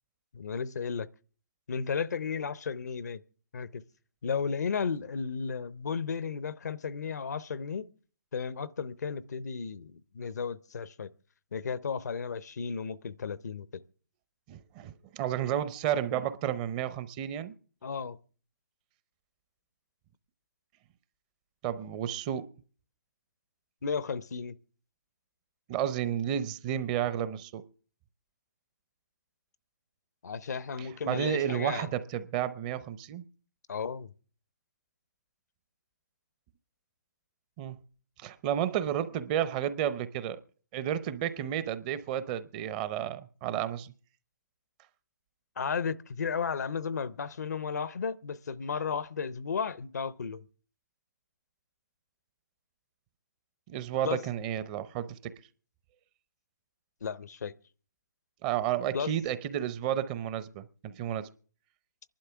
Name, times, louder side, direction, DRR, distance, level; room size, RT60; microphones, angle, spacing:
voice 1, 0.3-1.1 1.7-3.2 3.5-3.8 4.2-7.9 8.3-11.1 11.5-13.7 17.8-18.2 23.8-24.6 30.2-31.9 33.7-34.1 45.6-50.4 54.0-54.2 57.0-57.5 58.9-59.1, left 6 dB, 70° left, 0.7 m, -34 dB
voice 2, 14.5-17.5 21.6-22.5 25.7-27.6 30.8-33.2 37.6-37.8 38.2-40.4 40.7-43.9 53.7-55.3 58.4-61.3, right 10 dB, 25° right, 0.7 m, -32 dB
26.0 x 11.5 x 3.5 m
hypercardioid pair, 145°, 9 cm